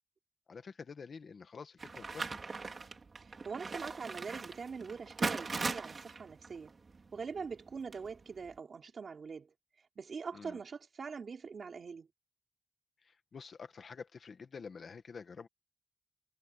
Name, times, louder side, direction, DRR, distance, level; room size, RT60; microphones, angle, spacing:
voice 1, 0.5-2.4 10.3-10.6 13.0-15.5, left 5 dB, 75° left, 1.7 m, -48 dB
sound 1, 1.8-8.6, right 4 dB, 50° right, 4.3 m, -40 dB
voice 2, 3.2-6.7 7.1-9.5 10.0-12.1, right 5 dB, 75° right, 3.8 m, -43 dB
wide cardioid pair, 150°, 0 cm